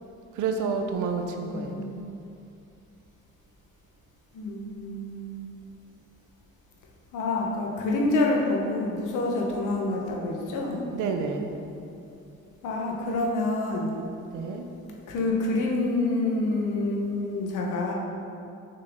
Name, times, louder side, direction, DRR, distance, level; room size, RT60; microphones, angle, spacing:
voice 1, 0.3-1.8 10.9-11.6 14.3-14.7, right 5 dB, 85° right, 5 dB, 0.7 m, -29 dB
voice 2, 1.5-2.0 4.3-5.5 7.1-10.8 12.6-14.0 15.1-17.9, left 2 dB, 90° left, -1 dB, 1.3 m, -27 dB
6.6 x 6.1 x 3.7 m, 2.6 s
cardioid pair, 90°, 30 cm